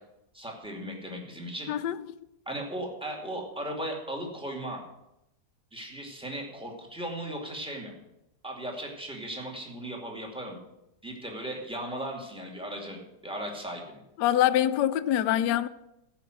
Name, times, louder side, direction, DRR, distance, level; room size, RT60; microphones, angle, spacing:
voice 1, 0.3-1.7 2.5-4.8 5.7-7.9 8.4-10.6 11.0-14.0, right 1 dB, 5° right, 2.3 m, -37 dB
voice 2, 1.7-2.2 14.2-15.7, left 12 dB, 75° left, 1.2 m, -25 dB
14.5 x 5.9 x 7.7 m
omnidirectional pair, 1.8 m